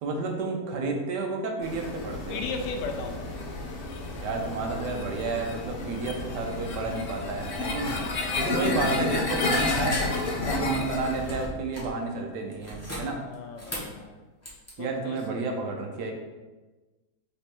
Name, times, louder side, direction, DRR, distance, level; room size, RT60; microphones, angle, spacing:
voice 1, 0.0-2.4 4.2-8.0 8.4-13.2 14.8-16.1, right 3 dB, 85° right, 3 dB, 1.3 m, -31 dB
sound 1, 1.6-11.5, left 2 dB, 60° left, 0.6 m, -31 dB
voice 2, 2.3-3.4 13.3-14.2 14.8-15.4, left 4 dB, 85° left, 4 dB, 1.2 m, -36 dB
sound 2, 7.8-8.4 8.8-9.2 9.5-10.4 11.2-12.0 12.5-14.0 14.4-14.7, left 1 dB, 15° left, 0.5 m, -37 dB
3.4 x 3.3 x 4.2 m, 1.2 s
omnidirectional pair, 1.8 m